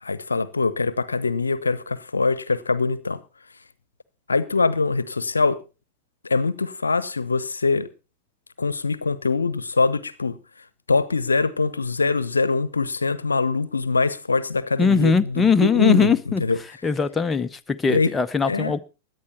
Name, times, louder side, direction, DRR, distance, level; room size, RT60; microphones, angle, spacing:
voice 1, 0.0-3.2 4.3-5.6 6.2-7.9 8.6-10.4 10.9-16.1 16.4-16.6 17.9-18.1 18.5-18.7, left 4 dB, 75° left, 0.8 m, -23 dB
voice 2, 14.8-16.4 16.8-18.8, left 5 dB, 15° left, 0.8 m, -20 dB
17.0 x 11.0 x 4.2 m
figure-of-eight pair, 90°, 0 cm